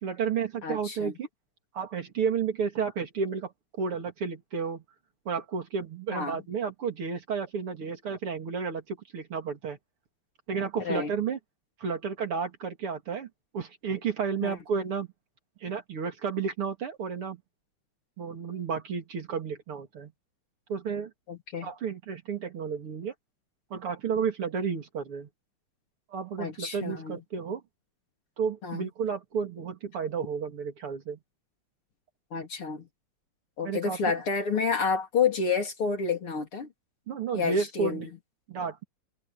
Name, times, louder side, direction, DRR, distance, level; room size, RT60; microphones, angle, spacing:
voice 1, 0.0-1.3 1.7-3.5 3.8-4.8 5.3-9.8 10.5-11.4 11.8-13.3 13.5-15.1 15.6-17.4 18.2-20.1 20.7-21.1 21.6-23.1 23.7-25.3 26.1-27.6 28.4-31.2 33.7-34.0 37.1-38.1 38.5-38.8, right 6 dB, 80° right, 3.5 m, -32 dB
voice 2, 0.6-1.1 6.1-6.4 10.8-11.1 14.4-14.6 21.3-21.7 26.4-27.2 28.6-28.9 32.3-32.9 33.6-36.7 37.3-38.1, left 5 dB, 75° left, 4.4 m, -29 dB
omnidirectional pair, 2.4 m